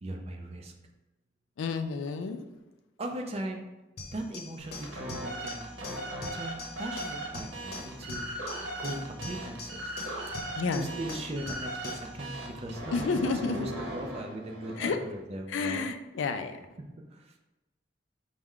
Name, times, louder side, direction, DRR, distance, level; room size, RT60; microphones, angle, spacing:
voice 1, 0.0-0.7 3.0-3.6 4.1-5.7 6.3-8.3 8.8-9.9 10.7-15.8 17.1-17.4, right 1 dB, 35° right, 0.4 m, -38 dB
voice 2, 1.6-2.4 10.6-10.9 12.9-13.7 14.8-15.0 15.5-16.6, left 4 dB, 75° left, 0.4 m, -30 dB
sound 1, 4.0-12.1, left 3 dB, 55° left, 0.7 m, -43 dB
sound 2, 4.6-15.2, right 1 dB, 85° right, 0.9 m, -39 dB
4.6 x 2.1 x 3.6 m
head